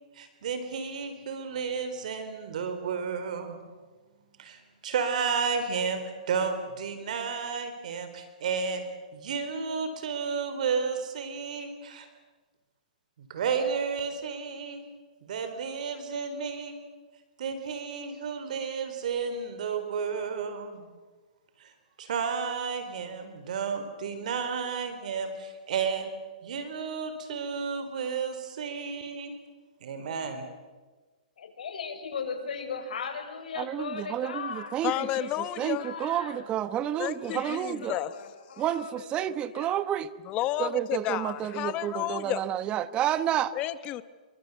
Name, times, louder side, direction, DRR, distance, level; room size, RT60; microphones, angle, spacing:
voice 1, 0.2-3.6 4.4-6.0 6.3-8.8 9.1-12.1 13.3-14.8 15.2-16.8 17.4-20.9 21.6-21.7 22.0-26.1 26.4-29.3 29.8-30.4, right 6 dB, 60° right, 9 dB, 4.0 m, -32 dB
voice 2, 31.4-36.4 37.0-39.8, left 6 dB, 75° left, 5 dB, 6.4 m, -38 dB
voice 3, 33.6-38.0 38.6-40.1 40.6-43.5, right 11 dB, 20° right, 15 dB, 1.1 m, -30 dB
voice 4, 34.8-35.9 37.0-38.1 40.3-42.4 43.5-44.0, left 14 dB, 25° left, 15 dB, 1.1 m, -31 dB
29.0 x 23.5 x 8.2 m, 1.3 s
hypercardioid pair, 150°, 4 cm